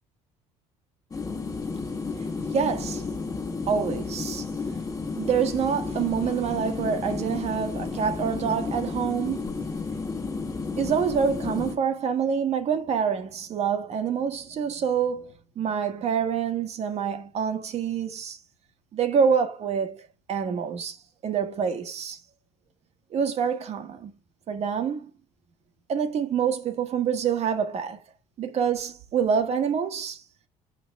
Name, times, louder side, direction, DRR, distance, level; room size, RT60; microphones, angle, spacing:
sound 1, 1.1-11.7, left 4 dB, 25° left, 1.6 m, -32 dB
voice 1, 2.5-2.9 3.7-4.5 5.2-9.5 10.8-18.4 18.9-21.0 21.2-22.2 23.1-24.1 24.5-25.1 25.9-28.0 28.4-30.2, right 7 dB, 50° right, 1.2 m, -26 dB
7.6 x 5.3 x 3.4 m
cardioid pair, 100°, 14 cm